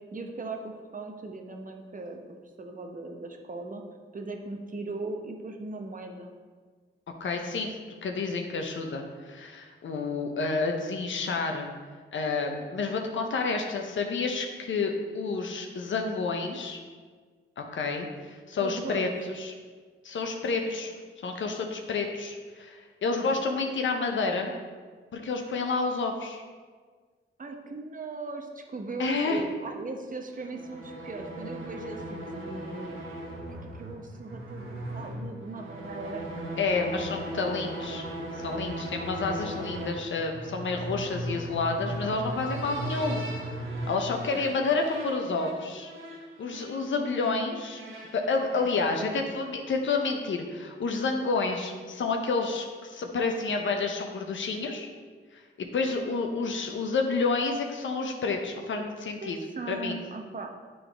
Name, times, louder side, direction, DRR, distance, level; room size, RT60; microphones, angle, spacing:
voice 1, 0.1-2.2 2.6-3.8 4.1-6.3 18.6-19.0 23.2-23.3 27.4-33.2 33.6-36.4 36.9-37.1 44.3-44.5 45.4-45.6 59.2-60.5, right 3 dB, 40° right, 4 dB, 0.9 m, -39 dB
voice 2, 7.2-7.7 8.0-11.7 12.1-16.8 17.6-19.5 20.0-20.9 21.2-24.5 25.1-26.4 29.0-29.4 36.6-38.1 38.4-43.2 43.9-45.9 46.4-47.8 48.1-54.9 55.6-59.4 59.7-60.0, left 4 dB, 65° left, 3 dB, 0.7 m, -29 dB
sound 1, 30.3-49.4, right 1 dB, 70° right, 1.2 m, -38 dB
9.3 x 3.9 x 3.4 m, 1.5 s
cardioid pair, 55°, 21 cm